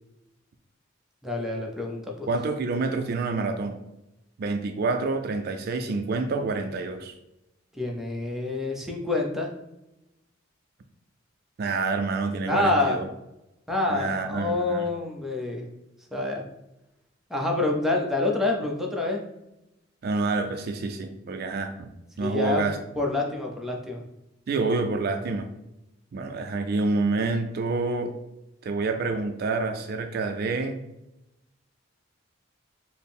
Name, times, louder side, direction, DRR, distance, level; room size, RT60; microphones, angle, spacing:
voice 1, 1.2-2.3 7.7-9.5 12.4-13.0 13.7-15.7 16.1-16.4 17.3-19.2 22.2-22.6 23.0-24.0, left 2 dB, ahead, -1 dB, 0.5 m, -27 dB
voice 2, 2.3-3.8 4.4-7.1 11.6-13.1 13.9-14.9 20.0-21.9 22.2-22.8 24.5-25.5 26.1-28.1 28.6-30.8, right 3 dB, 50° right, 6 dB, 0.3 m, -27 dB
4.2 x 2.0 x 3.5 m, 0.91 s
head